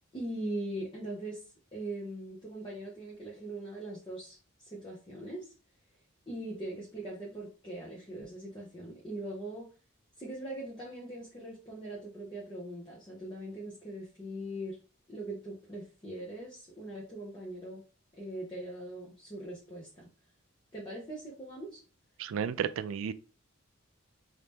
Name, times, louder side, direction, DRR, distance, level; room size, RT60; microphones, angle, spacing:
voice 1, 0.1-5.5 6.3-9.7 10.2-14.8 15.1-17.8 18.2-20.1 20.7-21.8, right 1 dB, 20° left, 0.9 m, -41 dB
voice 2, 22.2-23.1, right 7 dB, 70° right, 0.3 m, -32 dB
3.2 x 2.8 x 3.4 m
head